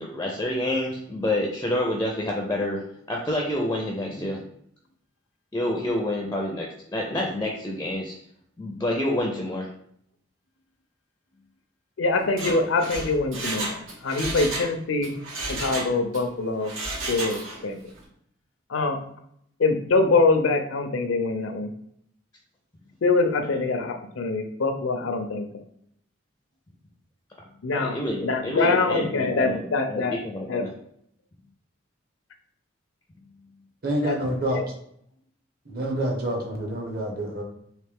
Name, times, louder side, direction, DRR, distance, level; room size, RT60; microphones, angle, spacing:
voice 1, 0.0-2.8 3.1-4.4 5.5-8.1 8.6-9.7 23.4-23.5 27.7-30.7, left 1 dB, 15° left, -1 dB, 0.4 m, -28 dB
voice 2, 12.0-15.2 15.6-16.7 17.1-17.8 18.7-19.0 19.6-21.7 23.0-25.4 27.6-28.0 28.2-30.1 30.5-30.6 34.0-34.2 34.5-34.6, left 3 dB, 80° left, 6 dB, 0.5 m, -24 dB
Mechanisms, 12.2-14.7 15.0-16.2 16.6-17.7 18.0-18.1, right 2 dB, 85° right, 1.1 m, -32 dB
voice 3, 33.8-34.6 35.7-37.4, right 1 dB, 50° right, 0 dB, 0.8 m, -27 dB
3.3 x 3.0 x 3.4 m, 0.70 s
head